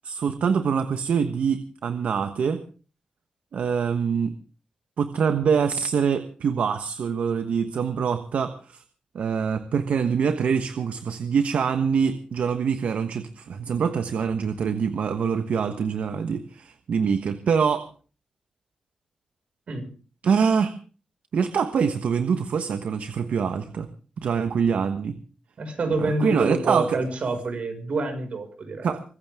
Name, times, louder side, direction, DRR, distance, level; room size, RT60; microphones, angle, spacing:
voice 1, 0.0-2.6 3.5-4.4 5.0-8.8 9.1-17.9 20.2-20.7 21.3-23.9 24.2-25.2 26.0-27.0 28.8-29.0, right 6 dB, 80° right, 9 dB, 1.2 m, -24 dB
voice 2, 25.6-28.9, right 3 dB, 65° right, 6 dB, 5.7 m, -27 dB
24.5 x 15.0 x 3.6 m, 0.39 s
wide cardioid pair, 100°, 2 cm